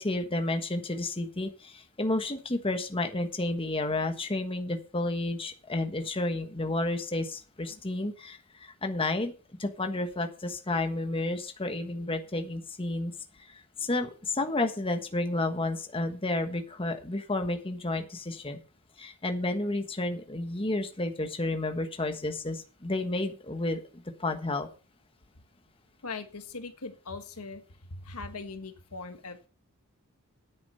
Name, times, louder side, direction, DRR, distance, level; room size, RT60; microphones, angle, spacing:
voice 1, 0.0-9.3 9.6-13.1 13.5-18.6 19.0-24.7, left 2 dB, 25° left, 6 dB, 1.3 m, -31 dB
voice 2, 26.0-27.6 27.9-29.5, left 3 dB, 80° left, 8 dB, 1.5 m, -40 dB
9.9 x 9.2 x 5.5 m, 0.35 s
head